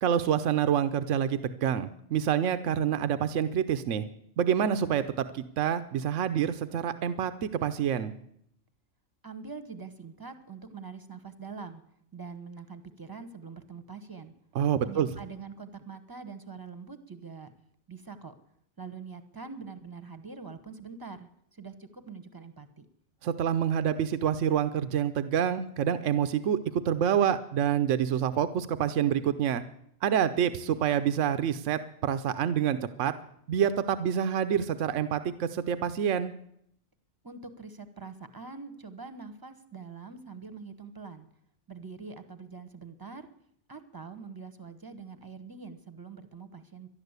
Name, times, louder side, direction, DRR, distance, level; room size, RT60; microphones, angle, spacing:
voice 1, 0.0-4.1 4.4-8.1 14.5-15.1 23.2-29.6 30.0-33.1 33.5-36.3, right 9 dB, 80° right, 11 dB, 1.1 m, -27 dB
voice 2, 9.2-11.8 12.1-14.3 14.8-17.5 17.9-18.3 18.8-22.9 37.2-41.3 41.7-43.3 43.7-46.9, right 5 dB, 20° right, 10 dB, 1.0 m, -44 dB
12.0 x 11.5 x 8.1 m, 0.72 s
omnidirectional pair, 1.3 m